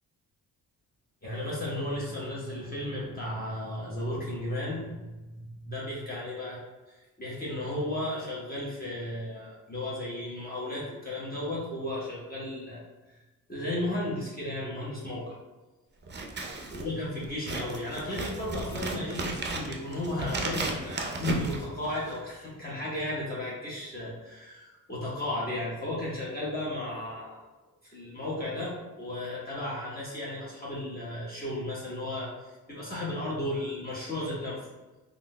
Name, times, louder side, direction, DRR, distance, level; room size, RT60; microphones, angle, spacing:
voice 1, 1.2-6.6 6.9-12.8 13.1-13.2 13.5-15.3 16.7-27.4 27.8-34.7, left 1 dB, 25° left, -7 dB, 1.1 m, -34 dB
Scissors, 16.0-22.3, right 2 dB, 25° right, 0.6 m, -35 dB
3.5 x 2.5 x 2.2 m, 1.1 s
supercardioid pair, 50°, 40 cm